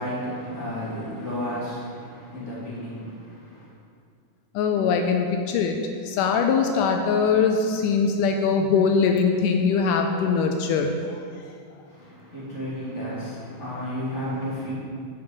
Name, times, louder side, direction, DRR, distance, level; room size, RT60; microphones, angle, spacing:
voice 1, 0.0-3.7 11.9-14.7, equal, 20° left, -8 dB, 2.9 m, -32 dB
voice 2, 4.6-5.8 6.1-10.9, left 5 dB, 85° left, 4 dB, 2.2 m, -22 dB
11.0 x 5.4 x 6.6 m, 2.3 s
omnidirectional pair, 3.7 m